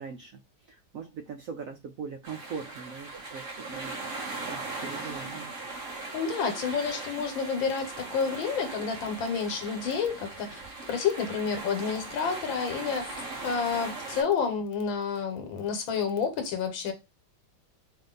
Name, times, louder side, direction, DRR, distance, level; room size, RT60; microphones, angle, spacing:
voice 1, 0.0-5.5, right 6 dB, 85° right, 0.7 m, -41 dB
sound 1, 2.2-14.2, right 3 dB, 30° right, 1.5 m, -39 dB
voice 2, 6.1-10.6 10.9-13.1 13.4-16.9, left 6 dB, 80° left, 1.7 m, -29 dB
5.0 x 2.6 x 3.8 m
omnidirectional pair, 2.1 m